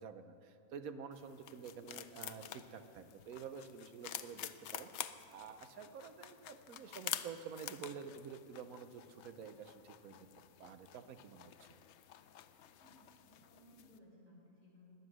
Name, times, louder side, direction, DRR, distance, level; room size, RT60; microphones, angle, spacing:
voice 1, 0.0-10.2 10.6-11.5, right 6 dB, 80° right, 9 dB, 1.3 m, -49 dB
sound 1, 1.1-14.0, left 10 dB, 65° left, 0.7 m, -49 dB
voice 2, 12.8-14.9, left 1 dB, 35° right, -4 dB, 4.5 m, -62 dB
17.5 x 11.0 x 6.3 m, 2.6 s
omnidirectional pair, 1.5 m